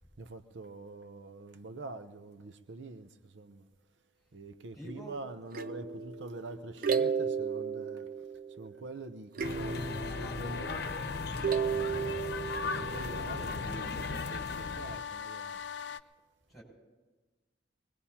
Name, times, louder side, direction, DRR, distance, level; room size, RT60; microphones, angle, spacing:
voice 1, 0.2-3.7 4.3-8.3 8.6-10.9 11.7-15.6, right 2 dB, 90° right, 0.7 m, -45 dB
voice 2, 4.8-5.2 16.5-16.6, right 4 dB, ahead, 6.3 m, -44 dB
sound 1, 5.5-8.8 9.3-11.1 11.4-13.8, right 6 dB, 50° right, 0.5 m, -35 dB
sound 2, 9.4-15.0, left 3 dB, 60° left, 0.9 m, -38 dB
sound 3, 9.6-16.0, left 7 dB, 85° left, 0.5 m, -41 dB
24.5 x 20.5 x 2.9 m
head